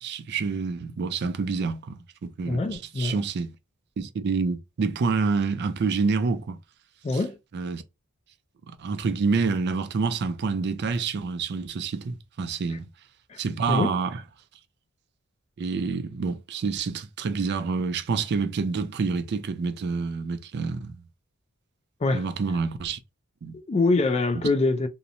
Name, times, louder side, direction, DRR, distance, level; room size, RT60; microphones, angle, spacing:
voice 1, 0.0-3.5 4.0-6.6 7.5-7.8 8.7-12.9 13.4-14.2 15.6-20.9 22.1-23.0 23.4-23.6, right 4 dB, 50° right, 0.4 m, -27 dB
voice 2, 2.5-3.2 7.0-7.4 12.7-12.8 13.3-13.4 13.7-13.9 22.0-22.3 23.5-24.9, left 3 dB, 30° left, 0.3 m, -24 dB
2.9 x 2.1 x 2.5 m
head